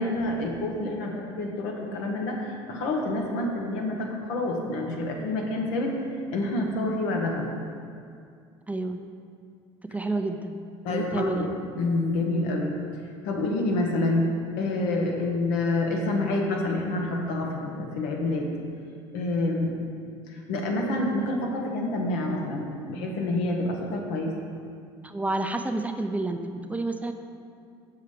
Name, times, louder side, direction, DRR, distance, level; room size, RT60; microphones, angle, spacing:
voice 1, 0.0-5.9 6.3-7.5 10.8-11.4 11.8-12.8 13.2-14.3 14.6-18.5 19.1-19.7 20.3-24.3, left 2 dB, 80° left, 0 dB, 1.1 m, -27 dB
voice 2, 8.7-9.0 9.9-10.6 10.9-11.5 25.0-27.1, right 2 dB, 10° right, 6 dB, 0.4 m, -29 dB
6.0 x 5.6 x 4.9 m, 2.3 s
supercardioid pair, 85°, 12 cm